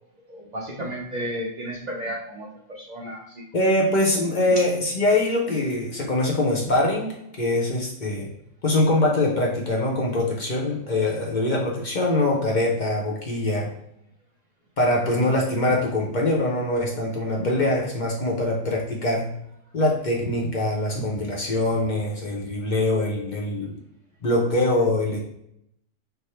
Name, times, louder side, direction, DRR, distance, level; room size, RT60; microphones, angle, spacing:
voice 1, 0.3-3.4, equal, 45° right, -3 dB, 0.6 m, -33 dB
voice 2, 3.5-7.1 7.4-8.3 8.6-13.7 14.8-19.3 19.7-23.7 24.2-25.2, left 1 dB, 45° left, -2 dB, 0.7 m, -23 dB
3.4 x 2.1 x 4.2 m, 0.75 s
omnidirectional pair, 1.4 m